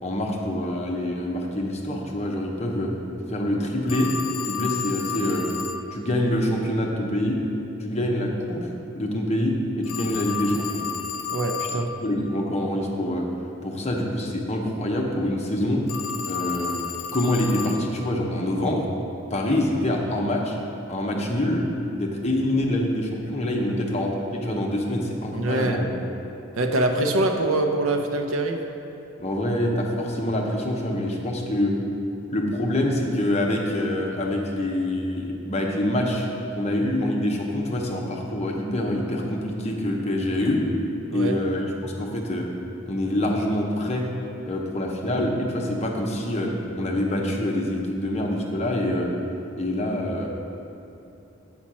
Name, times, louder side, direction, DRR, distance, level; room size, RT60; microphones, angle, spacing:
voice 1, 0.0-2.9 3.3-4.1 4.4-5.5 5.9-7.4 7.8-8.7 8.9-10.8 11.7-13.3 13.6-15.8 16.3-16.8 17.1-18.9 19.3-20.6 20.9-21.6 21.9-25.8 29.2-31.7 32.3-36.3 36.5-40.6 41.1-42.5 42.9-44.1 44.4-49.1 49.6-50.3, left 1 dB, 30° left, -1 dB, 0.8 m, -25 dB
Telephone, 3.9-5.9 9.8-11.9 15.9-17.9, left 7 dB, 75° left, 0.5 m, -31 dB
voice 2, 11.3-11.9 23.7-23.8 25.3-25.8 26.6-28.6 41.1-41.4, right 2 dB, 75° right, 4 dB, 0.7 m, -24 dB
8.7 x 4.3 x 6.1 m, 2.8 s
head